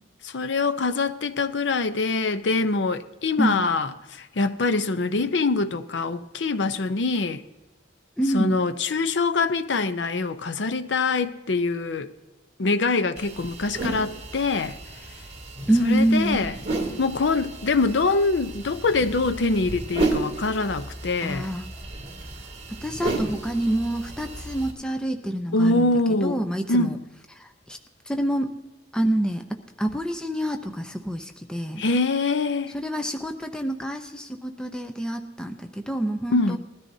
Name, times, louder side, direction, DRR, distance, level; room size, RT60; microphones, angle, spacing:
voice 1, 0.2-7.4 8.3-12.1 12.6-14.8 15.8-16.5 17.0-21.5 25.5-26.4 26.7-27.0 31.8-32.7 36.3-36.6, left 3 dB, 70° left, 0.6 m, -24 dB
voice 2, 8.2-8.6 15.7-16.6 21.2-21.7 22.7-25.9 26.2-27.0 27.4-27.8 28.1-28.6 28.9-31.8 32.7-36.6, right 1 dB, 5° left, 0.6 m, -27 dB
sound 1, 13.2-24.7, right 2 dB, 35° right, 2.7 m, -33 dB
20.5 x 13.0 x 2.7 m
head